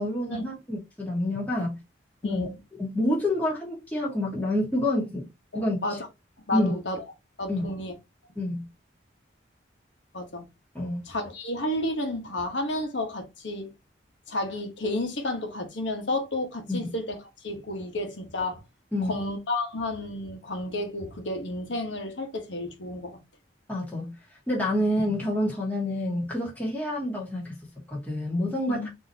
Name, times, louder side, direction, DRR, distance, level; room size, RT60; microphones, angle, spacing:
voice 1, 0.0-1.8 2.2-2.5 2.8-5.3 5.5-5.8 6.5-6.7 7.5-7.7 8.4-8.6 10.7-11.0 16.7-16.9 18.9-19.2 23.7-24.1 24.5-27.6 27.9-28.9, left 1 dB, 10° left, 1.3 m, -28 dB
voice 2, 2.2-2.5 5.5-6.1 6.5-7.0 7.4-7.9 10.1-10.5 11.0-13.7 14.3-17.2 17.4-18.6 19.0-23.2 24.8-24.9 28.7-28.9, left 1 dB, 70° left, 1.2 m, -31 dB
4.0 x 2.9 x 2.8 m
head